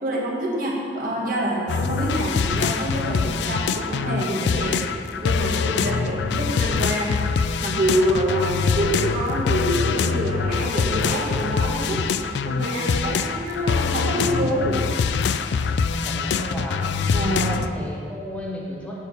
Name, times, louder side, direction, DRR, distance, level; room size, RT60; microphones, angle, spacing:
voice 1, 0.0-4.9 5.2-7.2 7.6-12.0 12.4-14.8 17.1-17.5, right 1 dB, 50° right, -3 dB, 1.5 m, -26 dB
sound 1, 1.7-17.7, left 5 dB, 70° left, 0.3 m, -24 dB
voice 2, 15.9-16.9 17.4-19.0, equal, 5° left, -4 dB, 0.9 m, -33 dB
8.4 x 4.5 x 6.7 m, 2.2 s
head